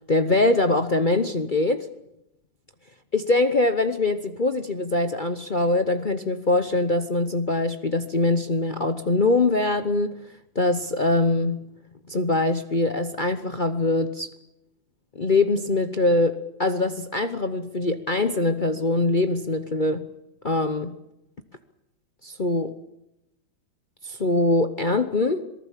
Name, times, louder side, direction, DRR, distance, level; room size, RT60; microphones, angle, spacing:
voice 1, 0.1-1.9 3.1-10.2 10.5-11.6 12.1-14.3 15.2-20.1 20.4-21.0 22.2-22.7 24.0-25.5, left 2 dB, 50° left, 8 dB, 0.6 m, -23 dB
26.5 x 19.0 x 7.5 m, 0.85 s
omnidirectional pair, 2.3 m